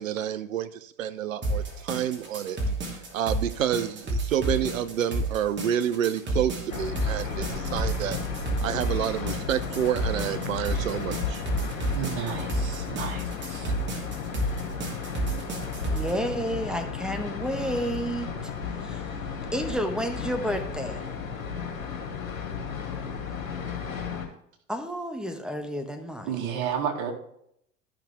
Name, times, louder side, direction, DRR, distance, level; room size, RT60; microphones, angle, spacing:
voice 1, 0.0-2.6 2.9-8.2 8.6-11.4, right 10 dB, 75° right, 13 dB, 0.8 m, -29 dB
sound 1, 1.4-16.1, right 1 dB, 25° right, 2.9 m, -31 dB
sound 2, 6.7-24.3, left 6 dB, 90° left, 2.2 m, -34 dB
voice 2, 11.9-13.7 26.2-27.1, right 8 dB, 50° right, 1 dB, 2.5 m, -32 dB
voice 3, 15.9-18.5 18.8-19.1 19.5-21.0 24.7-26.4, equal, ahead, 6 dB, 1.3 m, -31 dB
13.0 x 6.0 x 3.5 m, 0.71 s
hypercardioid pair, 80°, 40 cm